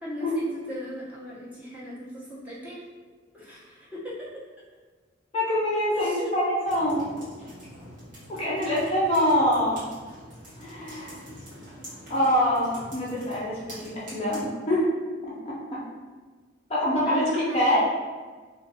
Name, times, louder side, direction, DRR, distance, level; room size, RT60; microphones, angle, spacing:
voice 1, 0.0-2.9 3.3-4.3 5.9-6.4 17.1-17.8, equal, 10° right, -10 dB, 0.7 m, -38 dB
voice 2, 5.3-7.0 8.3-9.8 10.6-11.2 12.1-14.8 15.2-15.8 16.7-17.8, equal, 30° left, -6 dB, 0.5 m, -25 dB
sound 1, 6.6-14.4, equal, 45° right, 1.1 m, -45 dB
2.8 x 2.5 x 2.7 m, 1.4 s
head